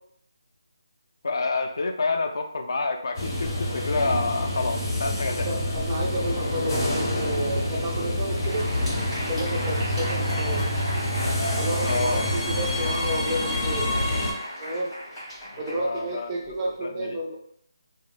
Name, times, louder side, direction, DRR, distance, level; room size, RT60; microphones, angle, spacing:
voice 1, 1.2-5.5 11.8-12.4 15.5-17.2, left 3 dB, 60° left, 4 dB, 0.4 m, -28 dB
sound 1, 3.1-14.3, left 1 dB, 45° left, 0.8 m, -27 dB
voice 2, 5.3-8.6 9.0-10.7 11.6-13.8 14.6-14.9 15.6-17.4, right 1 dB, 20° right, -2 dB, 0.4 m, -31 dB
Crowd, 8.3-16.7, equal, 5° left, 1.4 m, -36 dB
3.0 x 2.1 x 2.4 m, 0.69 s
figure-of-eight pair, 160°, 2 cm